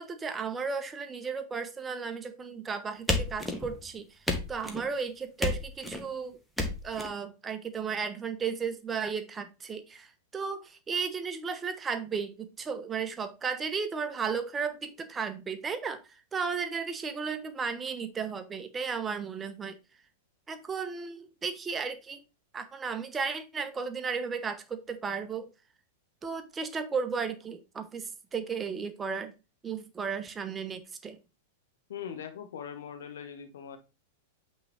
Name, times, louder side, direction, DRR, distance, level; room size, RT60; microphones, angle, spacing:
voice 1, 0.0-4.1 4.5-6.4 6.8-16.0 16.3-19.8 20.5-22.2 22.5-25.5 26.2-29.3 29.6-31.2, right 5 dB, 15° right, 0.8 m, -34 dB
sound 1, 3.1-3.9 4.3-4.9 5.4-6.0 6.6-7.1, left 2 dB, 5° left, 1.3 m, -31 dB
voice 2, 31.9-33.8, left 8 dB, 60° left, 1.2 m, -41 dB
8.4 x 3.6 x 3.3 m
figure-of-eight pair, 95°, 0 cm